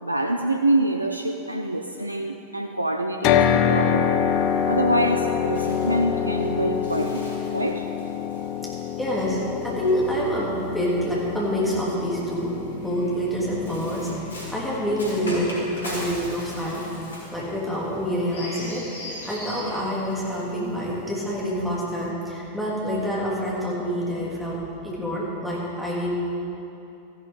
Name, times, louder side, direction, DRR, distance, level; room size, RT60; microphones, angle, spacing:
voice 1, 0.0-4.1 4.7-7.9, right 1 dB, 85° right, 5 dB, 0.4 m, -25 dB
sound 1, 3.2-17.4, left 8 dB, 40° left, 0.5 m, -27 dB
Bird, 4.3-10.8 11.8-20.6, left 1 dB, 70° left, 2.7 m, -40 dB
voice 2, 9.0-12.5 12.8-14.1 14.5-16.8 17.3-24.6 24.8-26.2, equal, ahead, -7 dB, 3.3 m, -27 dB
14.0 x 11.5 x 4.0 m, 2.9 s
figure-of-eight pair, 90°, 0 cm